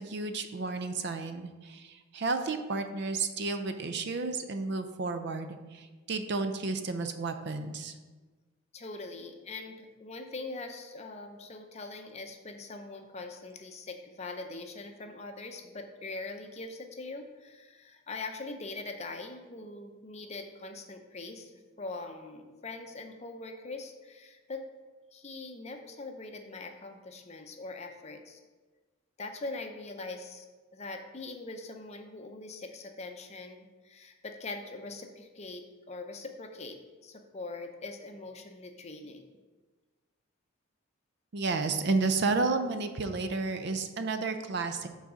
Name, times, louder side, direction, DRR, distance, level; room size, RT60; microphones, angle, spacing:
voice 1, 0.0-7.9 41.3-44.9, right 3 dB, 50° right, 7 dB, 0.5 m, -32 dB
voice 2, 8.7-21.5 21.8-24.6 25.1-28.4 29.2-30.4 30.7-39.3, left 3 dB, 30° left, 5 dB, 0.6 m, -42 dB
6.1 x 4.0 x 6.1 m, 1.3 s
head